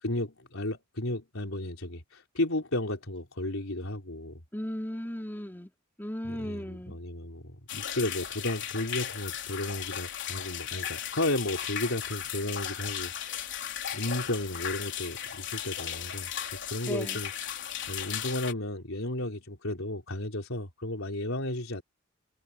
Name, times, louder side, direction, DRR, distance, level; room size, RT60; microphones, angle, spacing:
voice 1, 0.0-4.4 6.2-13.6 13.9-21.8, left 1 dB, 80° left, 4.0 m, -34 dB
voice 2, 4.5-5.7 6.0-7.0 16.9-17.2, equal, 10° left, 3.7 m, -36 dB
sound 1, 7.7-18.5, left 9 dB, 60° left, 4.0 m, -36 dB
head